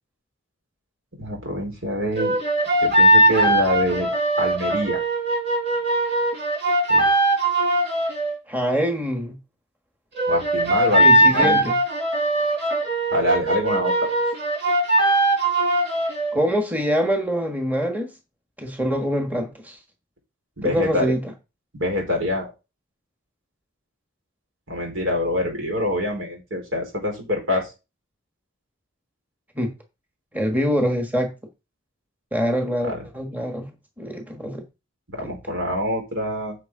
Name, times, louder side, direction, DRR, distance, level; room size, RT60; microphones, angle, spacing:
voice 1, 1.2-2.3 2.8-4.1 4.4-5.0 6.9-7.1 10.3-11.6 13.1-14.1 20.6-21.1 21.7-22.5 24.7-27.7 32.8-33.0 35.1-36.6, left 1 dB, 80° right, 4.5 m, -25 dB
sound 1, 2.2-8.4 10.2-16.4, right 1 dB, 60° right, 4.4 m, -20 dB
voice 2, 8.5-9.4 11.0-11.8 16.3-18.1 18.6-19.8 20.6-21.3 29.5-29.7 30.3-31.3 32.3-33.7 34.0-34.6 35.2-35.3, equal, 10° right, 1.4 m, -24 dB
10.0 x 6.5 x 3.8 m
head